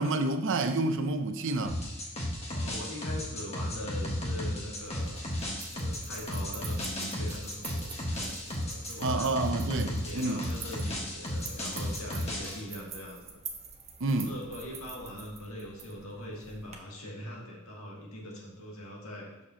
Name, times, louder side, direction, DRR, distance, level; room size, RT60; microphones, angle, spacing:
voice 1, 0.0-1.8 9.0-10.4 14.0-14.3, right 2 dB, 65° right, 0.6 m, -29 dB
sound 1, 1.6-12.6, left 1 dB, 30° left, 1.5 m, -34 dB
voice 2, 2.5-5.2 5.7-9.4 9.8-13.4 14.1-19.3, left 1 dB, 85° left, 1.8 m, -42 dB
sound 2, 4.7-16.8, right 5 dB, 30° right, 0.8 m, -47 dB
7.5 x 6.5 x 2.8 m
head